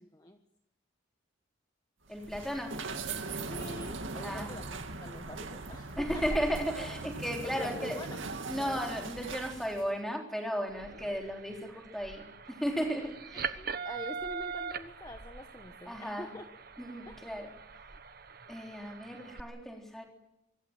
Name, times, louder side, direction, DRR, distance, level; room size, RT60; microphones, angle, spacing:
voice 1, 0.0-0.4 3.5-6.4 7.4-8.2 8.5-9.0 13.5-16.4 17.1-17.2, left 1 dB, 20° left, 6 dB, 1.2 m, -45 dB
voice 2, 2.1-2.7 4.2-4.6 6.0-8.0 8.5-13.5 15.9-16.3 16.8-17.5 18.5-20.1, equal, ahead, 1 dB, 3.8 m, -35 dB
sound 1, 2.1-9.9, right 3 dB, 85° right, 2.2 m, -39 dB
sound 2, 10.7-19.4, right 6 dB, 50° right, 1.1 m, -42 dB
24.5 x 15.0 x 9.2 m, 0.86 s
head